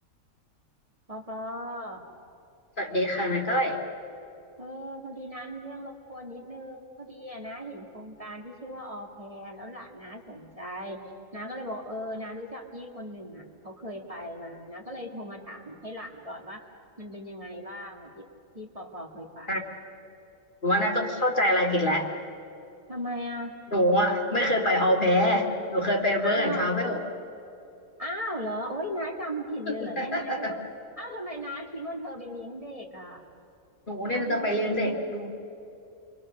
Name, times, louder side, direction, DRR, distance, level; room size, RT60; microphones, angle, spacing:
voice 1, 1.1-2.1 4.6-11.0 11.3-16.6 17.0-18.3 18.5-19.6 22.9-23.6 26.2-26.7 28.0-30.6 31.0-33.2 34.1-35.0, equal, 25° right, 0 dB, 1.9 m, -37 dB
voice 2, 2.8-3.8 19.5-19.6 20.6-22.1 23.7-27.0 29.7-30.6 33.9-35.3, equal, 40° left, 0 dB, 2.2 m, -25 dB
29.5 x 23.0 x 6.6 m, 2.7 s
omnidirectional pair, 1.4 m